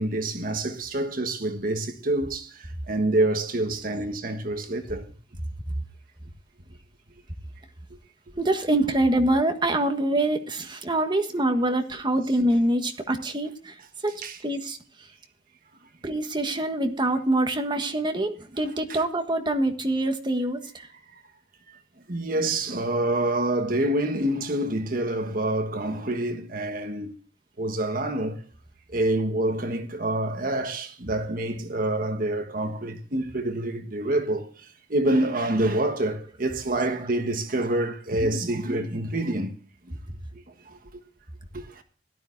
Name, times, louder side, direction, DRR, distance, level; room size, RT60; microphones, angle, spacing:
voice 1, 0.0-5.0 14.2-14.4 18.9-19.0 21.7-21.8 22.1-27.2 27.6-28.4 28.9-34.5 34.9-39.6 40.7-40.8 41.5-41.8, right 1 dB, 55° right, 1.4 m, -27 dB
voice 2, 8.4-13.7 14.0-14.8 16.0-20.9, right 1 dB, 25° right, 1.6 m, -25 dB
17.5 x 12.5 x 2.6 m
head